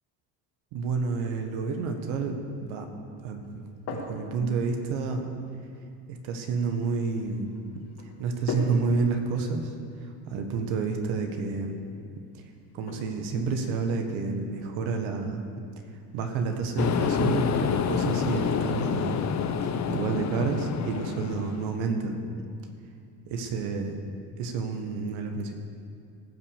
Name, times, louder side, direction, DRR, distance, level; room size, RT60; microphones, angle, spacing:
voice 1, 0.7-2.9 3.2-3.5 3.9-5.2 6.1-7.5 8.2-9.7 10.3-11.8 12.7-15.4 16.1-19.2 19.9-22.2 23.3-23.9 24.4-25.5, right 4 dB, 75° right, 5 dB, 1.6 m, -29 dB
sound 1, 3.4-21.5, left 3 dB, 55° left, 2.2 m, -45 dB
sound 2, 16.8-21.7, left 7 dB, 35° left, 0.8 m, -28 dB
18.0 x 6.2 x 6.6 m, 2.3 s
supercardioid pair, 95°, 47 cm